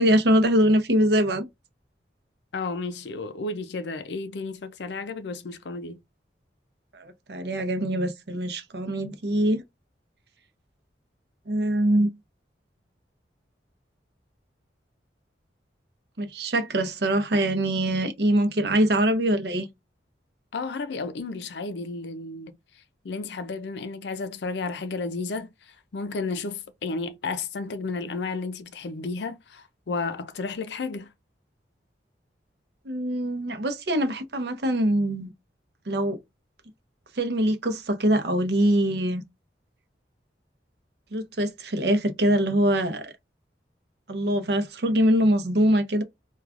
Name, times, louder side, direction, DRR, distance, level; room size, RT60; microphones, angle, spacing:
voice 1, 0.0-1.5 6.9-9.6 11.5-12.1 16.2-19.7 32.8-35.3 35.9-36.2 37.1-39.2 41.1-43.1 44.1-46.0, right 1 dB, 60° right, 0.7 m, -23 dB
voice 2, 2.5-6.0 20.5-22.6 23.0-31.1, left 3 dB, 70° left, 0.5 m, -32 dB
4.6 x 2.3 x 2.4 m
head